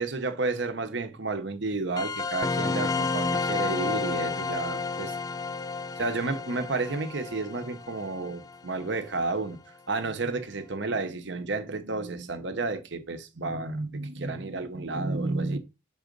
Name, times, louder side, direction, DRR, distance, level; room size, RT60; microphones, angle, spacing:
voice 1, 0.0-5.1 6.0-9.6 9.9-15.6, right 3 dB, 65° right, 0.9 m, -31 dB
sound 1, 2.0-9.1, left 4 dB, 20° left, 0.3 m, -31 dB
5.6 x 3.9 x 5.2 m
head